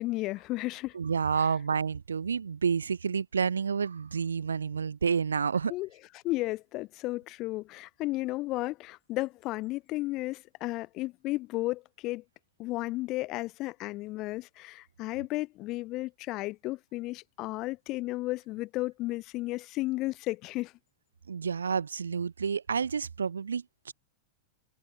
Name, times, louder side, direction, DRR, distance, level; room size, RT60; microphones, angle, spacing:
voice 1, 0.0-1.0 5.7-5.9 6.2-12.2 12.6-20.7, left 19 dB, 40° left, 0.6 m, -33 dB
voice 2, 0.9-5.7 21.3-23.9, right 6 dB, 70° right, 0.8 m, -29 dB
figure-of-eight pair, 90°, 0 cm